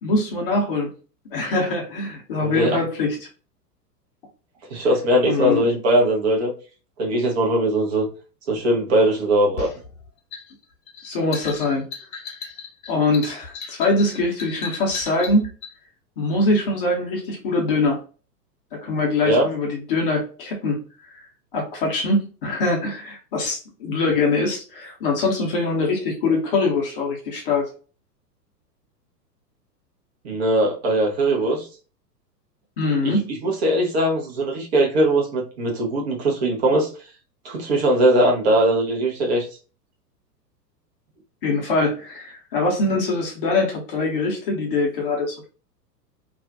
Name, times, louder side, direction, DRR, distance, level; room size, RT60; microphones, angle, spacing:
voice 1, 0.0-0.9 1.3-3.2 5.3-5.6 11.0-11.8 12.9-15.5 16.2-18.0 18.7-20.8 21.1-21.2 21.5-27.7 32.8-33.3 41.4-45.5, left 2 dB, 35° left, 0.6 m, -23 dB
voice 2, 2.4-2.8 4.7-6.5 7.0-8.1 8.5-9.7 19.2-19.5 30.2-31.7 33.0-33.1 33.4-36.9 37.4-39.5, right 1 dB, 40° right, 0.7 m, -20 dB
sound 1, 9.6-15.7, left 5 dB, 55° left, 0.9 m, -36 dB
2.4 x 2.1 x 2.4 m
figure-of-eight pair, 100°, 50 cm